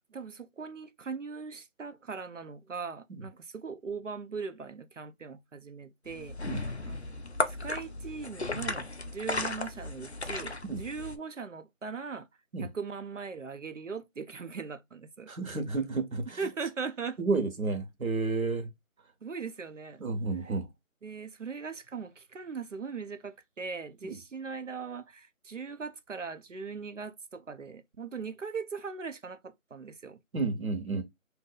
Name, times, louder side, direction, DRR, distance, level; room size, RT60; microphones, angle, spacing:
voice 1, 0.1-7.2 7.5-12.3 12.6-15.3 16.4-17.2 19.2-20.0 21.0-30.2, right 5 dB, 60° right, 0.6 m, -40 dB
sound 1, 6.1-11.2, left 2 dB, 55° left, 0.4 m, -35 dB
voice 2, 15.3-16.4 17.2-18.7 20.0-20.7 24.0-24.2 30.3-31.0, right 3 dB, 80° right, 1.2 m, -31 dB
2.6 x 2.5 x 3.9 m
figure-of-eight pair, 180°, 41 cm